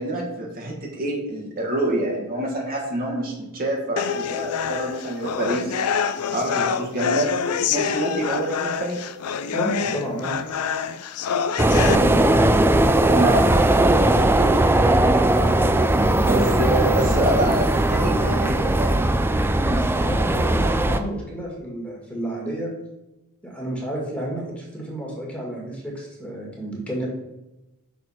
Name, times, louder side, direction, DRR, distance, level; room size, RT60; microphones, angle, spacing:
voice 1, 0.0-5.7 6.3-7.3 7.7-9.0 11.8-12.1 13.0-14.6 15.9-19.0, right 1 dB, 40° right, -1 dB, 1.3 m, -26 dB
sound 1, 4.0-11.9, left 7 dB, 85° left, 0.5 m, -26 dB
voice 2, 9.5-10.4 11.7-12.4 15.2-17.5 19.6-22.7 23.4-27.1, right 1 dB, 5° left, -3 dB, 1.9 m, -31 dB
sound 2, 11.6-21.0, right 1 dB, 10° right, 0.4 m, -19 dB
6.4 x 4.3 x 5.6 m, 0.97 s
head